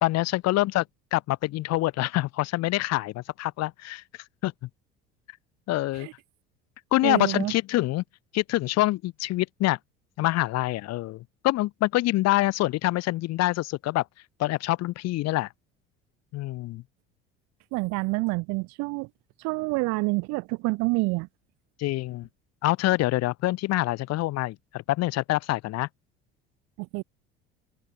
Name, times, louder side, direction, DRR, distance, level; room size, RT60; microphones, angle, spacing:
voice 1, 0.0-0.8 1.1-4.0 4.4-4.7 5.7-6.1 6.9-8.0 8.3-9.8 10.2-14.0 14.4-15.5 16.3-16.8 21.8-22.3 22.6-25.9, left 17 dB, 60° left, 1.3 m, -26 dB
voice 2, 7.0-7.5 17.7-19.1 19.4-21.3 26.8-27.0, right 26 dB, 65° right, 1.0 m, -27 dB
open air
hypercardioid pair, 70°, 30 cm